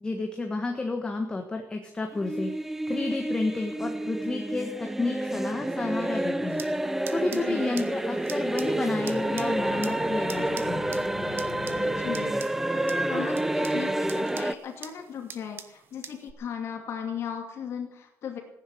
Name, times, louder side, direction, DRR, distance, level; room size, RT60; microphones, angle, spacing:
voice 1, 0.0-2.5 2.9-6.6 7.1-10.9, left 2 dB, 15° left, 4 dB, 1.5 m, -31 dB
sound 1, 2.1-14.5, right 1 dB, 5° right, 0.6 m, -29 dB
sound 2, 6.5-16.3, right 7 dB, 45° right, 1.2 m, -46 dB
voice 2, 7.3-7.7 11.7-18.4, left 8 dB, 55° left, 2 dB, 2.5 m, -37 dB
sound 3, 9.0-12.8, left 10 dB, 85° left, 1.2 m, -45 dB
15.5 x 10.5 x 7.8 m, 0.79 s
cardioid pair, 160°, 5 cm